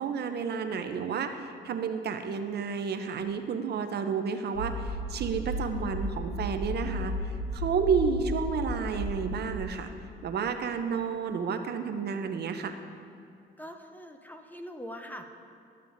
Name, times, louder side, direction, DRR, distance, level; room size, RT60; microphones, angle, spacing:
voice 1, 0.0-7.1 7.5-9.9 10.2-12.7, right 6 dB, 55° right, 7 dB, 0.6 m, -31 dB
sound 1, 4.5-9.6, equal, 65° left, 1.5 m, -34 dB
voice 2, 13.6-15.3, equal, 10° left, 5 dB, 0.5 m, -42 dB
12.5 x 6.6 x 2.6 m, 2.3 s
cardioid pair, 90°, 20 cm